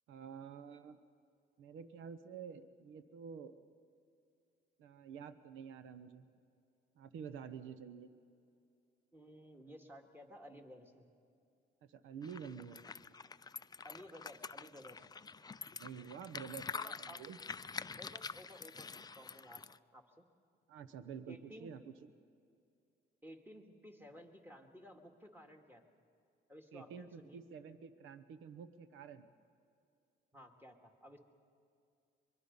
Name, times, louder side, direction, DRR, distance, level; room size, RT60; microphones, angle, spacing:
voice 1, 0.1-1.0 1.6-3.5 4.8-6.2 7.0-8.1 11.8-12.9 15.4-16.7 17.0-17.4 20.7-22.1 26.7-29.3, right 7 dB, 85° right, 12 dB, 0.9 m, -49 dB
voice 2, 9.1-11.1 13.8-15.1 16.7-17.3 18.0-20.2 21.3-21.7 23.2-25.8 26.5-27.4 30.3-31.2, equal, 10° right, 3 dB, 2.2 m, -55 dB
sound 1, 12.2-19.8, left 5 dB, 20° left, 0.4 m, -47 dB
23.5 x 22.5 x 5.5 m, 2.5 s
cardioid pair, 90°, 20 cm